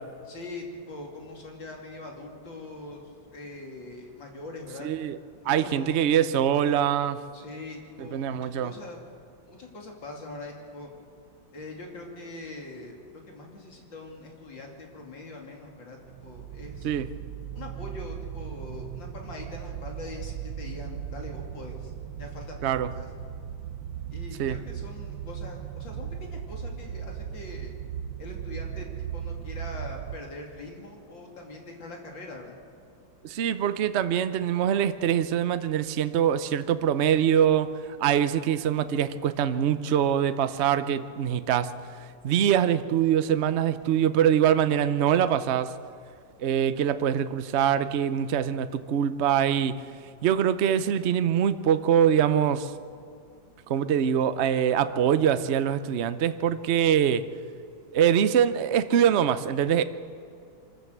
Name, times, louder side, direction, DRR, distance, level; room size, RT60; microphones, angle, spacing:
voice 1, 0.3-3.0 3.3-4.9 5.4-6.0 7.3-9.0 9.5-10.9 11.5-16.9 17.5-21.9 22.2-23.1 24.1-27.7 28.2-28.9 29.1-32.6, left 2 dB, 75° left, 1 dB, 3.5 m, -42 dB
voice 2, 4.8-5.2 5.4-7.2 8.0-8.7 16.8-17.1 22.6-22.9 24.4-24.6 33.2-37.7 38.0-41.7 42.2-45.7 46.4-49.7 50.2-52.7 53.7-57.3 57.9-59.8, right 9 dB, 60° right, 12 dB, 0.7 m, -23 dB
sound 1, 16.0-30.2, right 9 dB, 75° right, 1.4 m, -37 dB
25.0 x 13.5 x 8.0 m, 2.4 s
omnidirectional pair, 2.1 m